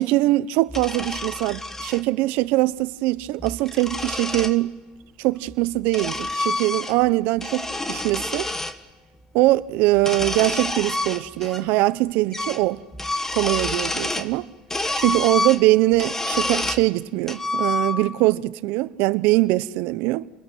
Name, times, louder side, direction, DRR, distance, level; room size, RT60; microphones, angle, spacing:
voice 1, 0.0-4.8 5.2-8.5 9.3-12.8 13.3-14.5 14.9-20.3, right 18 dB, 75° right, 1.0 m, -22 dB
sound 1, 0.7-2.0 3.2-4.6 5.5-7.1 7.4-8.8 9.9-11.6 11.9-12.0 12.3-12.7 12.9-14.3 14.7-16.9 17.3-18.2, left 2 dB, 15° left, 1.6 m, -28 dB
29.5 x 21.5 x 9.3 m
supercardioid pair, 110°, 3 cm